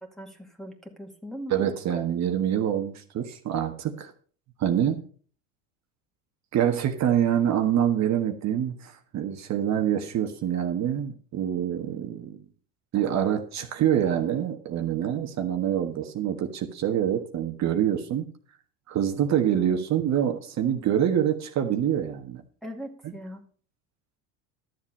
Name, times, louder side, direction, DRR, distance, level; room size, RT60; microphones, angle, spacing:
voice 1, 0.0-1.5 22.6-23.4, equal, ahead, 0 dB, 2.2 m, -40 dB
voice 2, 1.5-4.1 4.6-5.0 6.5-12.4 12.9-18.3 18.9-22.4, right 10 dB, 45° right, 5 dB, 1.5 m, -26 dB
12.5 x 7.5 x 5.4 m, 0.44 s
supercardioid pair, 105°, 38 cm